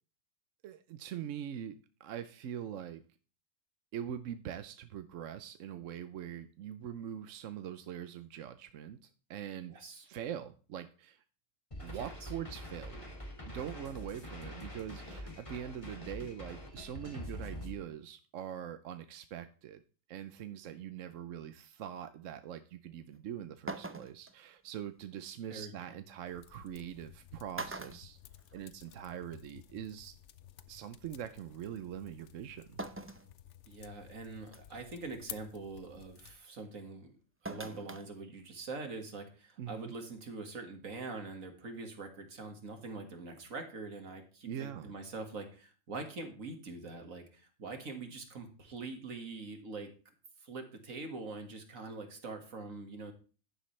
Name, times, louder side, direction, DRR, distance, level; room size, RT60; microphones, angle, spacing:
voice 1, 0.6-3.0 3.9-9.7 10.1-11.2 11.8-13.1 13.5-19.8 20.1-28.2 28.5-30.1 30.7-32.8 39.6-39.9 44.5-44.9, right 9 dB, 75° right, 10 dB, 1.0 m, -43 dB
voice 2, 9.7-10.1 11.9-12.3 25.5-26.0 33.7-37.1 37.4-49.9 50.4-53.1, right 3 dB, 90° right, 5 dB, 2.2 m, -44 dB
sound 1, 11.7-17.7, left 1 dB, 25° left, 2.0 m, -45 dB
sound 2, 23.1-23.2 23.7-24.3 25.9-26.0 27.0-27.2 27.5-28.9 29.3-29.4 30.6-30.7 32.8-33.3 33.8-33.9 34.5-34.8 37.4-38.1 38.4-38.5, right 2 dB, 15° right, 0.4 m, -42 dB
sound 3, 26.2-36.4, left 11 dB, 70° left, 0.9 m, -54 dB
11.0 x 10.0 x 3.2 m, 0.37 s
omnidirectional pair, 1.4 m